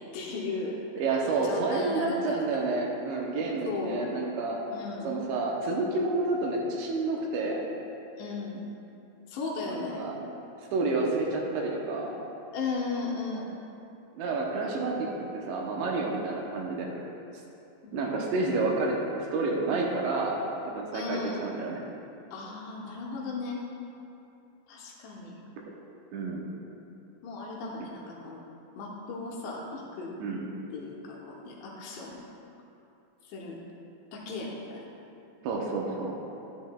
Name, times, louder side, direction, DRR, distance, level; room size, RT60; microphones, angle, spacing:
voice 1, 0.0-1.1 1.4-2.6 3.7-4.0 4.7-5.1 8.2-8.6 9.3-10.0 12.5-13.5 17.8-18.0 20.9-21.5 22.3-23.6 24.7-25.4 27.2-28.4 28.8-30.1 30.7-32.2 33.2-33.6 34.1-34.9, left 3 dB, 80° left, -3 dB, 2.9 m, -36 dB
voice 2, 1.0-4.6 5.0-7.6 9.7-10.2 10.7-12.1 14.1-17.1 17.9-20.4 20.7-21.8 26.1-26.4 30.2-30.4 35.4-36.2, right 3 dB, 80° right, -1 dB, 2.8 m, -29 dB
10.5 x 10.5 x 2.2 m, 2.8 s
omnidirectional pair, 5.4 m